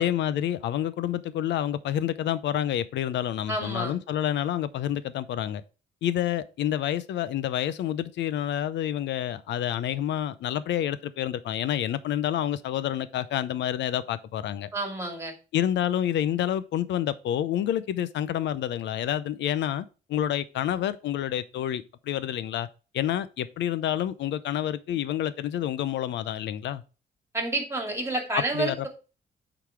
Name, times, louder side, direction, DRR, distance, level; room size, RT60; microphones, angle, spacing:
voice 1, 0.0-5.6 6.0-14.7 15.5-22.7 22.9-26.8 28.3-28.9, left 11 dB, 80° left, 0.6 m, -28 dB
voice 2, 3.5-3.9 14.7-15.3 27.3-28.9, right 2 dB, 15° right, 2.4 m, -29 dB
8.3 x 4.0 x 4.6 m
cardioid pair, 105°, 19 cm